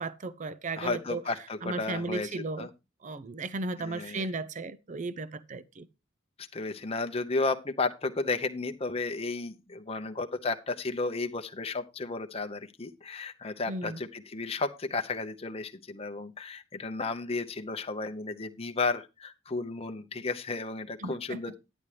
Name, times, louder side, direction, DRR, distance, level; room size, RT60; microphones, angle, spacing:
voice 1, 0.0-1.2 1.6-2.7 3.0-5.9 13.7-14.0 21.0-21.4, right 3 dB, 40° right, 0.5 m, -35 dB
voice 2, 0.8-2.7 3.8-4.3 6.4-21.5, left 3 dB, 30° left, 0.7 m, -33 dB
10.5 x 9.7 x 3.3 m
head